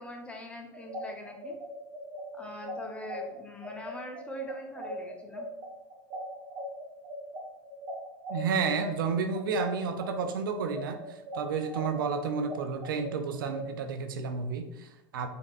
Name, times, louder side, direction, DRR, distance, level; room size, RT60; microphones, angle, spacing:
voice 1, 0.0-1.6 2.3-5.5, left 1 dB, 10° left, 2 dB, 0.8 m, -42 dB
sound 1, 0.7-10.1 10.5-13.6, equal, 40° right, 1.2 m, -40 dB
voice 2, 8.3-15.3, right 5 dB, 90° right, 8 dB, 0.5 m, -31 dB
4.2 x 4.1 x 2.5 m, 0.89 s
supercardioid pair, 110°, 11 cm